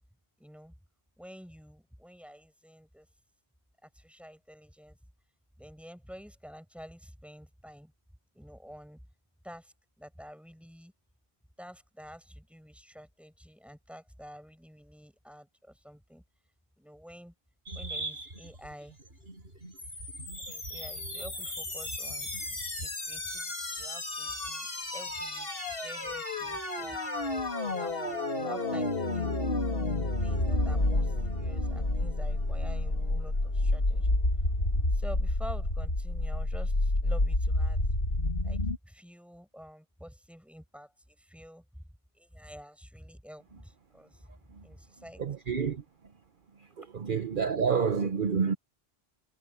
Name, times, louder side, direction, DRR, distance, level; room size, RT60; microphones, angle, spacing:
voice 1, 0.4-0.7 1.2-3.1 3.8-5.0 5.6-7.9 8.3-9.0 9.4-10.9 11.6-16.2 16.8-17.3 17.7-19.0 20.4-25.5 25.8-27.0 27.6-28.0 28.3-29.6 30.2-34.2 34.9-37.8 38.4-38.6 38.8-41.8 42.1-44.3 44.6-45.2, equal, ahead, 7.5 m, -49 dB
sound 1, 17.7-22.9, right 2 dB, 75° right, 5.9 m, -43 dB
sound 2, 19.8-38.8, left 2 dB, 65° left, 3.1 m, -30 dB
voice 2, 45.2-45.8 46.8-48.5, right 6 dB, 55° right, 1.1 m, -28 dB
omnidirectional pair, 1.0 m